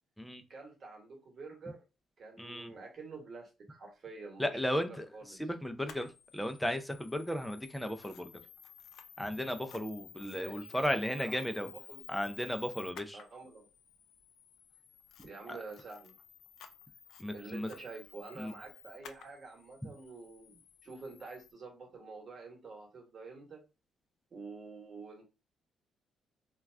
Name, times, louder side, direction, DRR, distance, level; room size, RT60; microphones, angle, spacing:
voice 1, 0.5-1.8 2.2-5.4 10.3-12.4 13.1-13.7 15.2-16.1 17.3-23.6 24.3-25.2, right 3 dB, 50° right, 1 dB, 1.2 m, -48 dB
voice 2, 2.4-2.7 4.4-5.1 5.4-6.1 6.3-8.3 9.2-11.7 12.1-13.2 15.5-15.6 17.2-17.7 18.4-18.5, equal, 5° left, 8 dB, 0.5 m, -35 dB
Camera, 5.8-21.5, left 8 dB, 75° left, 0.4 m, -54 dB
2.3 x 2.3 x 3.2 m, 0.28 s
cardioid pair, 90°, 0 cm